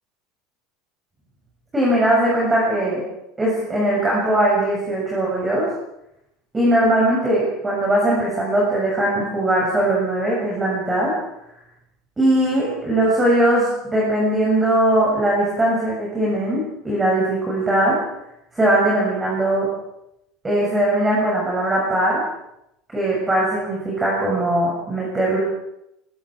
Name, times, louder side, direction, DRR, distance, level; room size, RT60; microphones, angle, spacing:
voice 1, 1.7-3.0 3.4-5.7 6.5-11.1 12.2-18.0 18.5-19.7 20.4-22.2 22.9-25.4, right 1 dB, 10° right, -4 dB, 7.1 m, -20 dB
26.5 x 22.0 x 4.9 m, 0.82 s
cardioid pair, 165°, 0 cm